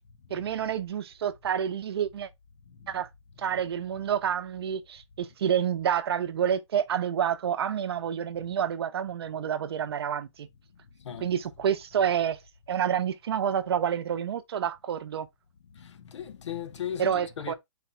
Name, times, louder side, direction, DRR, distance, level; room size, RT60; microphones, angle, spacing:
voice 1, 0.3-2.3 2.9-3.1 3.4-10.5 11.2-12.4 12.7-15.3 17.0-17.5, right 8 dB, 55° right, 0.6 m, -28 dB
voice 2, 15.8-17.5, left 9 dB, 65° left, 0.7 m, -37 dB
4.1 x 2.3 x 4.2 m
hypercardioid pair, 165°, 16 cm